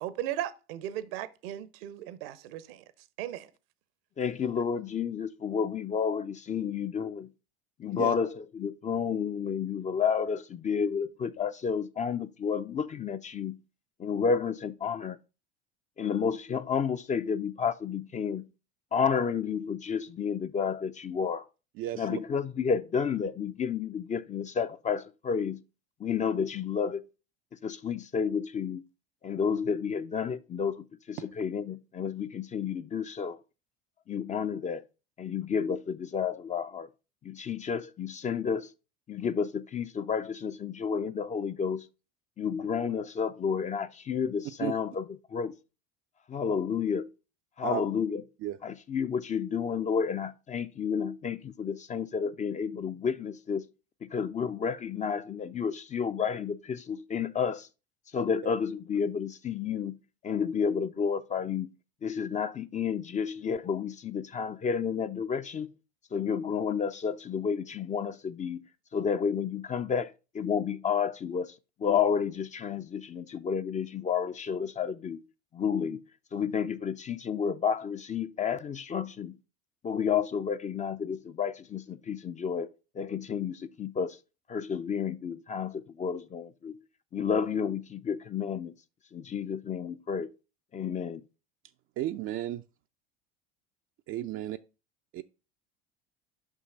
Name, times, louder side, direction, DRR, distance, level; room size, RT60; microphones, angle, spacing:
voice 1, 0.0-2.8 3.2-3.5, right 12 dB, 65° right, 0.8 m, -36 dB
voice 2, 4.2-7.3 7.8-13.6 14.0-15.2 16.0-18.4 18.9-21.5 22.0-25.6 26.0-27.1 27.6-28.8 29.2-33.4 34.1-34.8 35.2-36.9 37.2-38.7 39.1-41.9 42.4-45.0 45.3-45.5 46.3-47.1 47.6-48.2 48.6-53.7 54.0-57.7 58.1-61.7 62.0-65.7 66.1-68.6 68.9-71.5 71.8-75.2 75.5-76.0 76.3-79.4 79.8-84.2 84.5-86.7 87.1-88.7 89.1-90.3 90.7-91.2, left 6 dB, 25° left, 0.5 m, -31 dB
voice 3, 21.8-22.2 44.6-44.7 47.6-47.8 48.4-48.6 92.0-92.6 94.1-94.6 95.1-95.2, right 13 dB, 40° right, 0.5 m, -33 dB
6.2 x 5.6 x 5.5 m
hypercardioid pair, 75°, 32 cm